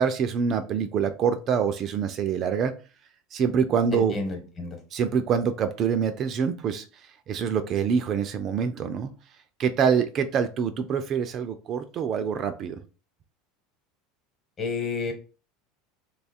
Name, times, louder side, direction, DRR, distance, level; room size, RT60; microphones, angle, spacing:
voice 1, 0.0-2.7 3.3-4.1 4.9-6.9 7.3-9.1 9.6-12.8, right 7 dB, 40° right, 9 dB, 0.4 m, -25 dB
voice 2, 3.9-4.8 14.6-15.1, left 4 dB, 30° left, 5 dB, 1.1 m, -30 dB
2.8 x 2.4 x 4.2 m, 0.35 s
supercardioid pair, 125°, 0 cm